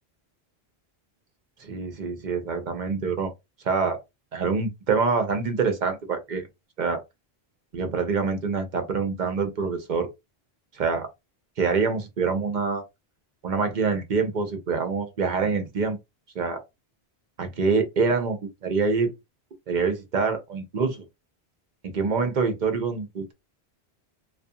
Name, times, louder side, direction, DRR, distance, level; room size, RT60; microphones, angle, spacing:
voice 1, 1.6-3.3 3.6-4.0 4.3-6.5 6.8-7.0 7.7-10.1 10.7-11.1 11.6-12.8 13.4-16.0 16.3-16.6 17.4-19.1 19.7-21.0 21.8-23.3, right 4 dB, 55° right, 0.7 m, -25 dB
2.4 x 2.4 x 2.6 m
omnidirectional pair, 1.1 m